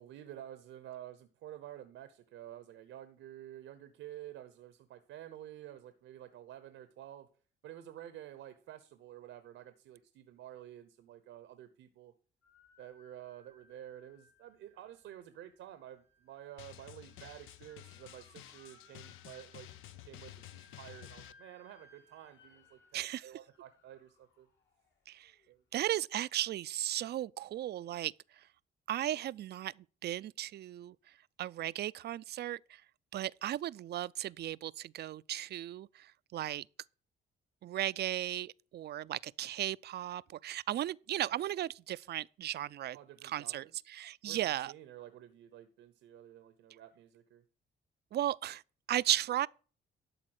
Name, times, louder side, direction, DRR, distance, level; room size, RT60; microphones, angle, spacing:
voice 1, 0.0-7.3 7.6-12.1 12.8-24.5 25.5-25.6 42.9-43.7 44.2-47.4, right 12 dB, 85° right, 0.9 m, -51 dB
sound 1, 12.4-25.5, left 3 dB, 65° left, 2.9 m, -66 dB
Drum, 16.6-21.3, left 14 dB, 85° left, 0.6 m, -52 dB
voice 2, 22.9-23.3 25.1-25.3 25.7-28.5 28.9-29.7 30.0-31.0 31.4-32.8 33.1-36.6 37.6-43.0 43.2-44.7 48.1-48.6 48.9-49.5, right 13 dB, 55° right, 0.4 m, -36 dB
12.0 x 4.1 x 7.9 m
cardioid pair, 90°, 20 cm